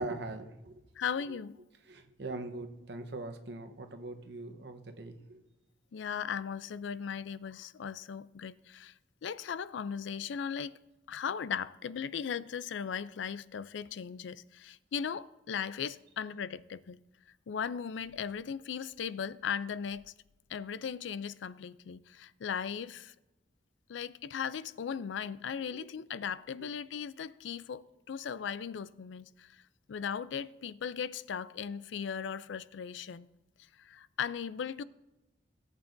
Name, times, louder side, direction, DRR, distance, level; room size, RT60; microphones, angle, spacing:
voice 1, 0.0-0.8 1.3-1.4 1.9-5.4, right 2 dB, 65° right, 0.9 m, -41 dB
voice 2, 1.0-1.6 5.9-8.9 9.2-10.8 11.1-17.0 17.5-20.1 20.5-23.1 23.9-29.6 29.9-33.3 33.8-34.8, left 7 dB, 80° left, 0.4 m, -37 dB
18.0 x 8.2 x 2.6 m
head